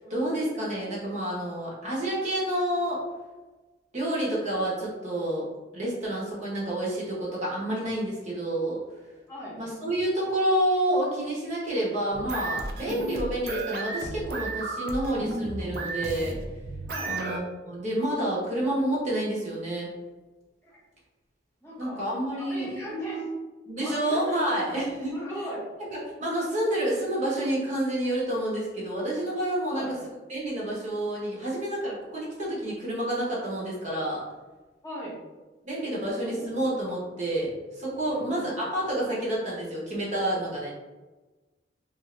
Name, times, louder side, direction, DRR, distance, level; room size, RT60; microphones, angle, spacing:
voice 1, 0.1-3.0 3.9-5.5 5.7-8.8 9.6-16.3 17.0-19.9 21.8-23.3 23.7-25.2 25.9-29.9 30.3-34.2 35.6-40.7, right 1 dB, 40° right, -5 dB, 0.9 m, -29 dB
voice 2, 9.3-9.6 12.7-13.2 16.9-17.2 20.6-20.8 21.6-22.0 22.4-23.2 23.8-24.9 25.1-25.7 29.7-30.0 34.8-35.2 35.8-36.5 38.1-38.5, equal, 15° left, -7 dB, 0.8 m, -39 dB
sound 1, 12.1-17.4, right 2 dB, 60° right, 0.4 m, -34 dB
2.5 x 2.5 x 3.1 m, 1.2 s
head